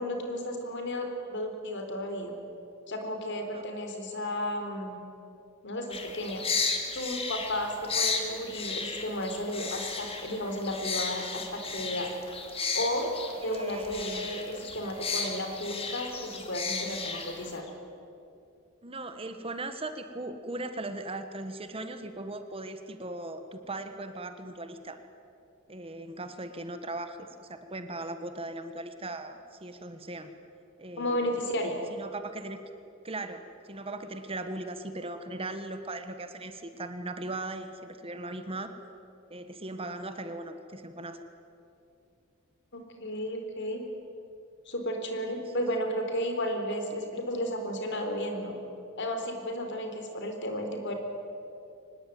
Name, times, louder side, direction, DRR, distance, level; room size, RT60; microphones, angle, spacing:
voice 1, 0.0-2.4 2.9-5.0 5.6-6.4 6.9-12.1 12.7-13.1 13.4-17.7 31.0-31.8 42.7-43.8 44.7-48.5 49.0-50.9, equal, 60° left, 4 dB, 3.9 m, -33 dB
sound 1, 5.9-17.6, left 4 dB, 30° left, 2.5 m, -34 dB
voice 2, 13.4-14.3 18.8-25.0 25.7-30.3 30.8-31.4 31.9-32.6 33.0-38.7 39.3-41.2 45.3-45.4, right 2 dB, 25° right, 9 dB, 1.3 m, -38 dB
24.5 x 20.0 x 9.4 m, 2.7 s
head